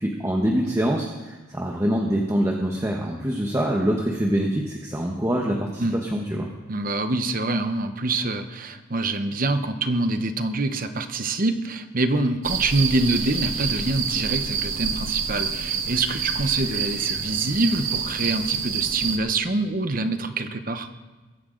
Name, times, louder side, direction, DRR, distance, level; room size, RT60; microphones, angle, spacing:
voice 1, 0.0-6.5, equal, 15° right, 0 dB, 1.1 m, -25 dB
voice 2, 6.7-20.9, right 2 dB, 45° right, 9 dB, 1.0 m, -25 dB
sound 1, 12.4-19.2, right 6 dB, 75° right, 1.5 m, -27 dB
22.0 x 10.5 x 3.9 m, 1.2 s
head